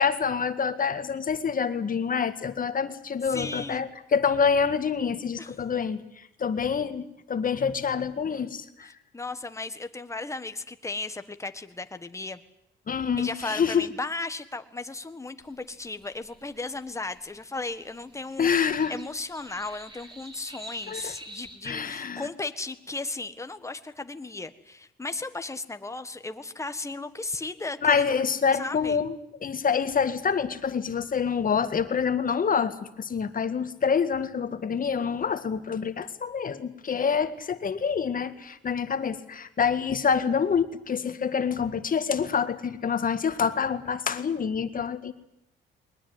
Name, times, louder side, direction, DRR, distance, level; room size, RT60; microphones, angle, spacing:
voice 1, 0.0-6.0 6.4-8.9 12.9-13.9 18.4-18.9 20.9-21.1 21.6-22.3 27.8-29.2 29.4-45.1, left 6 dB, 45° left, 11 dB, 2.0 m, -26 dB
voice 2, 3.2-3.8 5.4-5.6 8.8-12.4 13.2-28.2 28.5-29.0, left 3 dB, 15° left, 9 dB, 1.6 m, -35 dB
sound 1, 15.4-21.6, right 1 dB, 25° right, 4.9 m, -48 dB
22.0 x 20.0 x 9.7 m, 0.82 s
cardioid pair, 90°, 20 cm